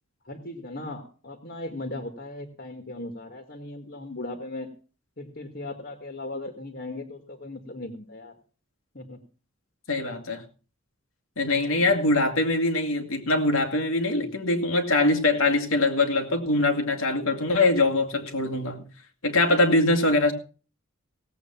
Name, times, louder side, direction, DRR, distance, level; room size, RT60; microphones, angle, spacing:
voice 1, 0.3-4.7 5.2-8.3 8.9-9.2 11.7-11.9 14.2-14.3, left 2 dB, 50° left, 6 dB, 1.9 m, -38 dB
voice 2, 9.9-10.4 11.4-18.8 19.2-20.3, left 2 dB, 85° left, 3 dB, 2.3 m, -23 dB
17.0 x 8.3 x 5.8 m, 0.38 s
head